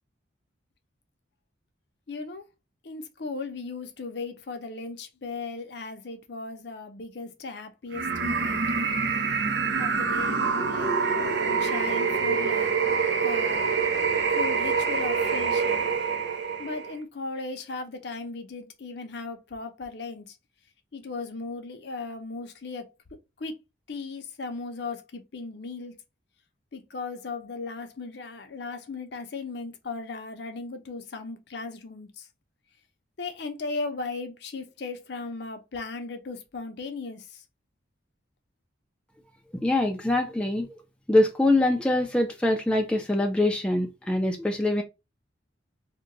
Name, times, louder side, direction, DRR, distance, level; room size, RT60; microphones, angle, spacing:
voice 1, 2.1-2.4 2.8-8.6 9.8-12.7 13.2-13.8 14.4-15.9 16.6-20.3 20.9-22.9 23.4-23.5 23.9-25.9 26.7-32.2 33.2-37.2, left 3 dB, 60° left, 0.6 m, -37 dB
sound 1, 7.9-16.9, right 5 dB, 65° right, 0.6 m, -26 dB
voice 2, 39.6-40.7 41.1-44.8, left 1 dB, 5° left, 0.3 m, -24 dB
2.8 x 2.2 x 3.8 m
head